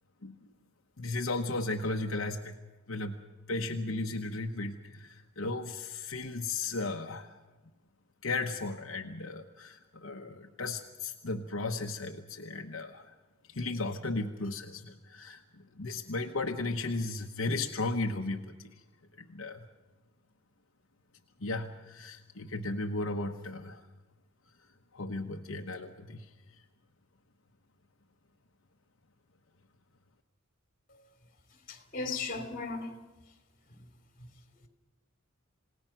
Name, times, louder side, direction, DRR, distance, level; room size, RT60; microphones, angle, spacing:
voice 1, 1.0-2.5 2.9-3.2 3.5-7.4 8.2-13.1 13.5-15.4 15.8-18.7 19.2-19.6 21.4-23.8 24.9-26.3, left 2 dB, 75° left, 1.1 m, -35 dB
voice 2, 31.7-32.9 33.7-33.8 34.2-34.3, left 4 dB, 45° left, 3.2 m, -36 dB
28.5 x 18.0 x 6.0 m
head